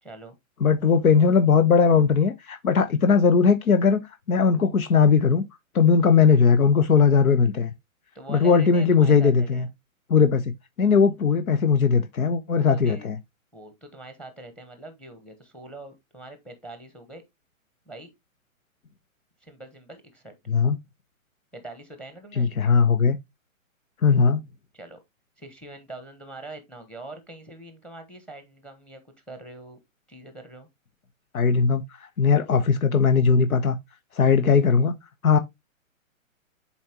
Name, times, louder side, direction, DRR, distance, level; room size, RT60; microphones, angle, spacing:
voice 1, 0.0-0.4 8.1-9.7 12.5-13.1 13.5-17.2 17.9-18.1 19.4-20.3 21.5-22.5 24.7-25.0 25.4-29.0 29.3-29.8 30.1-30.7, right 2 dB, 5° left, 1.1 m, -43 dB
voice 2, 0.6-5.4 5.7-7.7 8.3-9.7 10.1-10.5 10.8-13.2 20.5-20.8 22.4-23.2 24.0-24.4 31.3-33.8 34.1-34.9 35.2-35.4, left 5 dB, 85° left, 1.1 m, -19 dB
7.3 x 4.4 x 2.9 m
hypercardioid pair, 150°, 41 cm